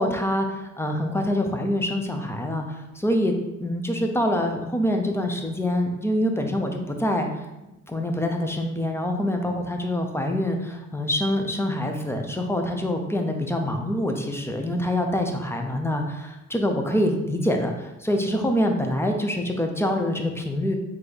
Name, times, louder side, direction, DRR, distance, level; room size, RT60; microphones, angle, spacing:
voice 1, 0.0-7.3 7.9-20.8, left 1 dB, 10° left, 3 dB, 0.6 m, -25 dB
3.9 x 3.4 x 3.4 m, 0.97 s
cardioid pair, 90°, 30 cm